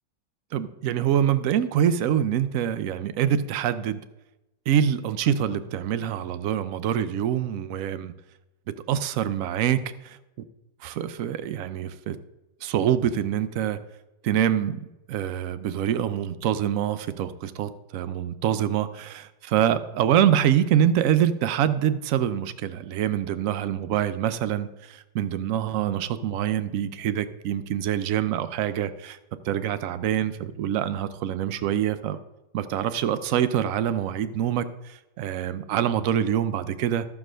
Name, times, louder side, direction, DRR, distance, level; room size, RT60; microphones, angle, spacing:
voice 1, 0.5-4.0 4.7-8.1 8.9-10.2 10.8-12.2 12.6-13.8 14.2-14.8 15.1-29.2 29.4-32.2 32.5-37.1, right 10 dB, 70° right, 13 dB, 0.7 m, -25 dB
14.0 x 4.8 x 6.2 m, 0.97 s
omnidirectional pair, 2.0 m